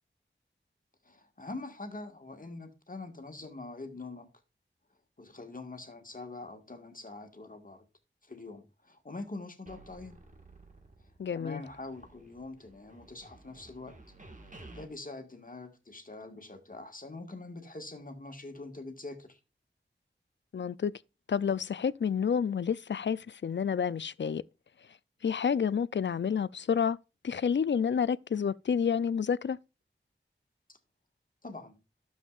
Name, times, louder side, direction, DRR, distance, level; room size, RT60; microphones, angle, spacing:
voice 1, 1.0-4.3 5.2-7.8 8.2-10.2 11.3-13.9 14.7-19.4 30.7-30.8 31.4-31.8, left 2 dB, 45° left, 1.7 m, -44 dB
sound 1, 9.7-11.3 11.6-14.8, right 2 dB, 40° right, 1.7 m, -53 dB
voice 2, 11.2-11.6 20.5-20.9 21.3-24.4 25.2-27.0 27.2-29.6, left 7 dB, 65° left, 0.4 m, -29 dB
12.0 x 7.2 x 2.4 m
wide cardioid pair, 60°, 20 cm